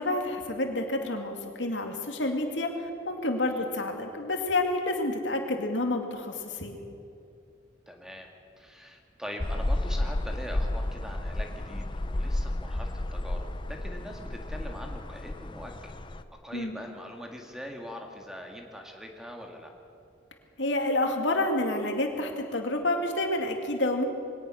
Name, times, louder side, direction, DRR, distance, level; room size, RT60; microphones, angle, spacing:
voice 1, 0.0-6.8 16.5-16.8 20.6-24.1, left 2 dB, 80° left, 3 dB, 2.4 m, -29 dB
voice 2, 7.9-8.3 8.6-15.9 16.4-19.7, equal, 5° right, 2 dB, 1.9 m, -42 dB
sound 1, 9.4-16.2, left 1 dB, 25° left, 0.6 m, -32 dB
22.0 x 18.5 x 6.5 m, 2.5 s
head